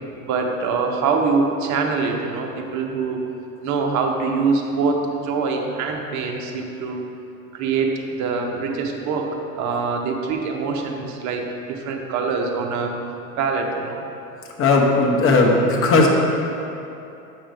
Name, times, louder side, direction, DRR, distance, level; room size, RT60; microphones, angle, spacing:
voice 1, 0.2-3.2 3.6-7.0 7.5-7.9 8.2-9.3 9.6-12.9 13.4-14.1, right 4 dB, 40° right, 2 dB, 0.9 m, -24 dB
voice 2, 14.6-16.1, left 3 dB, 30° left, 0 dB, 1.0 m, -16 dB
7.4 x 5.5 x 3.4 m, 2.8 s
hypercardioid pair, 100°, 44 cm